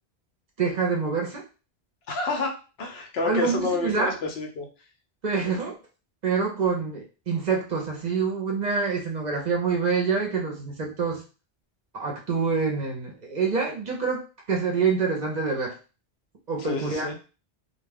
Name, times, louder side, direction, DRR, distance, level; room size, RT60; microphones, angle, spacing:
voice 1, 0.6-1.4 3.2-4.1 5.2-5.8 6.2-11.2 11.9-15.7 16.5-17.1, right 5 dB, 50° right, 1 dB, 0.6 m, -26 dB
voice 2, 2.1-2.5 2.8-4.7 16.5-17.1, left 3 dB, 75° left, 2 dB, 0.9 m, -29 dB
2.2 x 2.2 x 3.4 m, 0.33 s
omnidirectional pair, 1.0 m